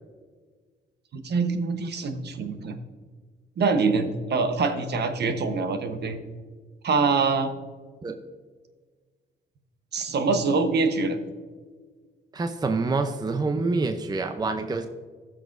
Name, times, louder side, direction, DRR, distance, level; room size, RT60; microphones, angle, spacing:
voice 1, 1.2-2.7 3.6-6.2 6.8-7.5 9.9-11.2, right 4 dB, 55° right, 7 dB, 1.1 m, -24 dB
voice 2, 12.3-14.9, right 3 dB, 20° right, 7 dB, 0.6 m, -26 dB
15.0 x 6.3 x 2.6 m, 1.5 s
cardioid pair, 90°, 20 cm